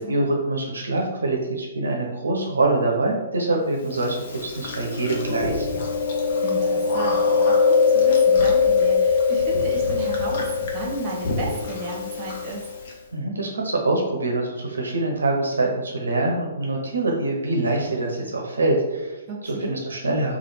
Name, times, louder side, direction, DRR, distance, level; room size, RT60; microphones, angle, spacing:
voice 1, 0.0-5.7 13.1-20.4, right 2 dB, 80° right, 1 dB, 0.6 m, -24 dB
Chewing mastication, 4.0-12.9, left 5 dB, 50° left, 0.8 m, -22 dB
voice 2, 6.4-12.6 19.3-19.8, right 2 dB, 35° right, -1 dB, 1.1 m, -34 dB
3.3 x 2.4 x 4.2 m, 1.1 s
figure-of-eight pair, 125°, 0 cm